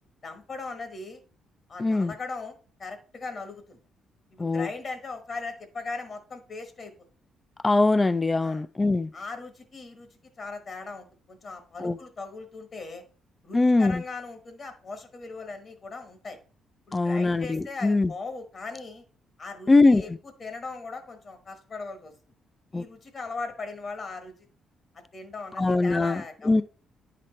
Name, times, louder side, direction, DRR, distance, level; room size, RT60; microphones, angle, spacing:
voice 1, 0.2-1.2 1.7-3.8 4.3-6.9 8.4-8.6 9.1-10.1 10.4-13.0 13.4-16.4 16.9-19.0 19.4-20.1 20.4-22.1 22.7-24.3 25.1-26.6, left 3 dB, 45° left, 1.2 m, -39 dB
voice 2, 1.8-2.1 4.4-4.7 7.6-9.1 11.8-12.0 13.5-14.0 16.9-18.1 19.7-20.0 22.7-22.8 25.6-26.6, left 3 dB, 20° left, 0.3 m, -22 dB
10.0 x 4.1 x 3.2 m
cardioid pair, 90°, 0 cm